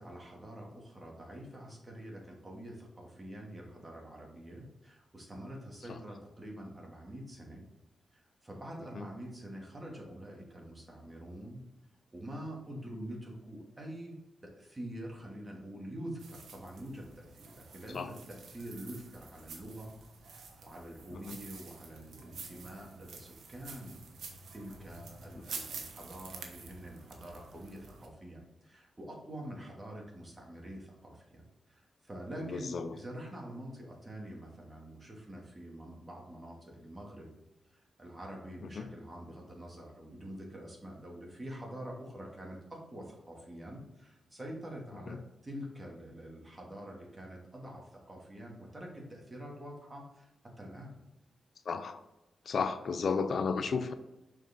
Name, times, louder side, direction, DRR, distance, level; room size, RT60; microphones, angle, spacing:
voice 1, 0.0-7.6 8.1-11.6 12.1-14.1 14.4-20.0 20.2-24.0 24.5-37.3 37.7-50.3 50.6-51.0, right 1 dB, 25° right, -1 dB, 2.5 m, -46 dB
sound 1, 16.2-28.1, right 4 dB, 80° right, 1.0 m, -49 dB
voice 2, 32.4-33.0 38.7-38.9 45.1-45.2 51.7-52.0 52.5-53.9, left 5 dB, 65° left, 10 dB, 0.5 m, -33 dB
5.9 x 5.0 x 3.8 m, 0.94 s
cardioid pair, 55°, 0 cm